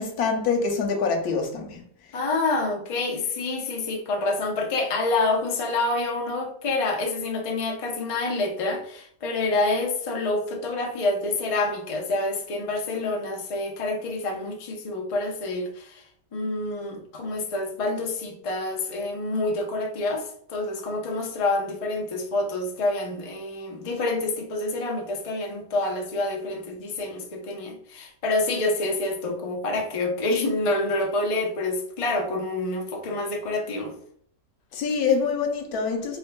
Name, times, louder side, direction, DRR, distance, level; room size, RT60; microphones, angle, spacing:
voice 1, 0.0-1.8 34.7-36.2, left 5 dB, 90° left, 1.2 m, -25 dB
voice 2, 2.1-16.0 16.3-33.9, left 2 dB, 40° left, 0.4 m, -27 dB
4.1 x 3.5 x 2.2 m
omnidirectional pair, 1.6 m